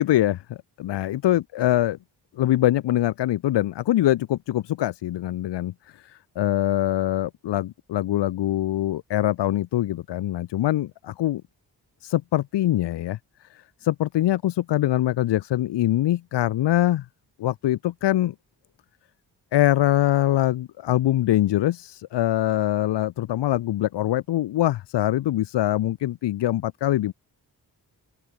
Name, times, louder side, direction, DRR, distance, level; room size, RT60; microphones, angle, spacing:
voice 1, 0.0-2.0 2.4-11.4 12.0-13.2 13.5-17.1 17.4-18.3 19.5-27.1, left 14 dB, 85° left, 0.6 m, -23 dB
open air
cardioid pair, 80°, 41 cm